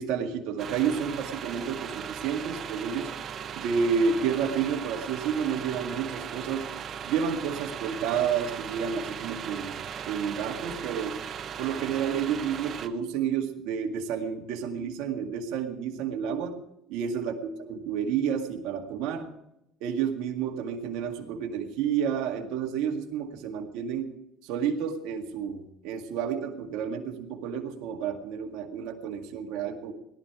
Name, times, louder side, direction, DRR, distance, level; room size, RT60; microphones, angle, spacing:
voice 1, 0.0-3.1 3.6-6.7 7.0-9.8 10.1-11.2 11.6-16.6 16.9-19.3 19.8-24.1 24.4-29.9, right 7 dB, 75° right, 2 dB, 2.0 m, -30 dB
sound 1, 0.6-12.9, right 8 dB, 45° right, 1.0 m, -38 dB
18.0 x 12.0 x 4.9 m, 0.82 s
supercardioid pair, 110°, 0 cm